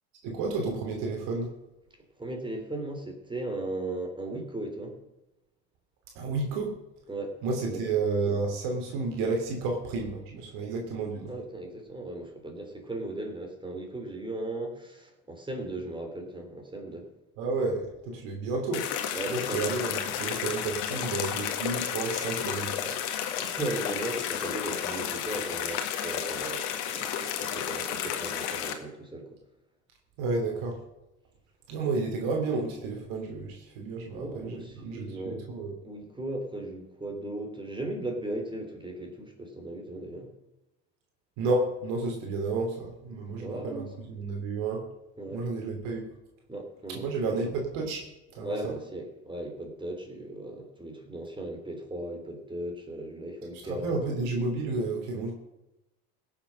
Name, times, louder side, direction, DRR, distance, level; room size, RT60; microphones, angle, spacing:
voice 1, 0.2-1.5 6.1-6.7 7.4-11.3 17.4-18.9 19.3-22.9 30.2-30.8 31.7-35.7 41.4-44.8 45.3-46.0 46.9-48.0 48.3-48.7 53.6-55.3, right 3 dB, 75° right, 1 dB, 3.0 m, -31 dB
voice 2, 2.2-5.0 7.1-7.4 7.7-7.8 11.3-17.1 19.1-19.7 20.9-21.0 23.4-29.4 34.1-35.4 35.8-40.3 43.3-43.9 45.2-45.4 46.5-47.3 48.4-54.0, right 1 dB, 15° right, 3 dB, 3.5 m, -37 dB
sound 1, 18.7-28.7, left 9 dB, 75° left, 1.8 m, -32 dB
16.5 x 7.3 x 6.3 m, 0.93 s
supercardioid pair, 85°, 33 cm